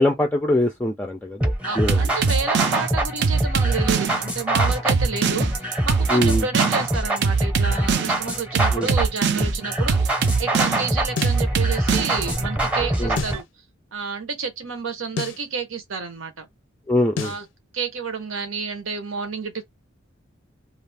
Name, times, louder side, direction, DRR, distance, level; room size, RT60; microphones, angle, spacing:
voice 1, 0.0-2.0 6.1-6.5 8.7-8.9 13.0-13.2 16.9-17.3, left 1 dB, 10° left, 0.4 m, -22 dB
sound 1, 1.4-13.4, right 1 dB, 5° right, 0.8 m, -25 dB
voice 2, 1.6-13.4 13.9-16.5 17.2-17.5 17.7-19.6, right 4 dB, 90° right, 0.8 m, -30 dB
sound 2, 1.9-12.4, right 5 dB, 60° right, 0.4 m, -22 dB
sound 3, 11.2-11.5 13.2-13.5 15.2-15.5 17.2-17.5, left 6 dB, 70° left, 0.5 m, -30 dB
2.4 x 2.4 x 3.3 m
head